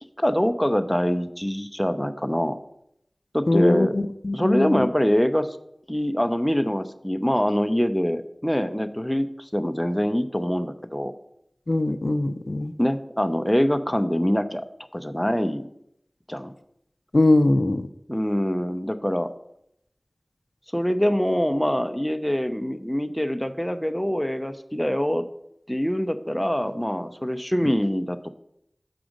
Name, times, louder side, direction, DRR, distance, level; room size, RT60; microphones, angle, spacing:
voice 1, 0.2-2.6 3.3-4.0 4.3-5.5 5.9-11.1 12.8-14.7 14.9-15.7 16.3-16.5 18.1-19.3 20.7-25.3 25.7-28.3, equal, 5° left, 9 dB, 0.6 m, -24 dB
voice 2, 3.5-4.9 11.7-12.7 17.1-17.9 27.6-27.7, left 2 dB, 55° left, 10 dB, 0.4 m, -21 dB
6.0 x 5.0 x 6.4 m, 0.75 s
wide cardioid pair, 40°, 0 cm